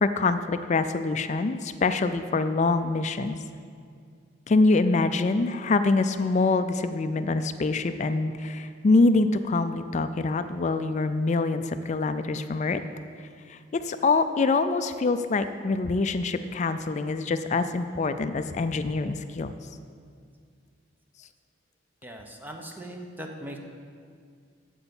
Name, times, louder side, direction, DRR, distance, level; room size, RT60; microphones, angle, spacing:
voice 1, 0.0-3.4 4.5-12.8 13.5-19.5, left 3 dB, 35° left, 10 dB, 0.4 m, -25 dB
voice 2, 22.0-23.6, right 1 dB, 10° right, 2 dB, 0.9 m, -39 dB
8.4 x 7.9 x 7.1 m, 2.2 s
head